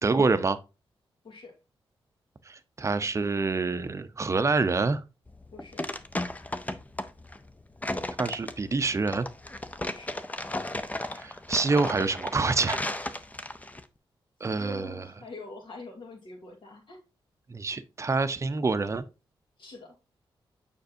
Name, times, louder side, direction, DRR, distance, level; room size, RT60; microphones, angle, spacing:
voice 1, 0.0-0.6 2.5-5.0 8.2-9.3 11.1-12.8 14.4-14.9 17.5-19.0, right 3 dB, 30° right, 0.6 m, -26 dB
sound 1, 5.3-13.8, left 1 dB, 15° left, 0.6 m, -35 dB
voice 2, 5.5-5.8 9.9-10.2 14.6-17.0 19.6-19.9, left 2 dB, 60° left, 2.5 m, -44 dB
6.6 x 5.3 x 2.7 m
cardioid pair, 70°, 9 cm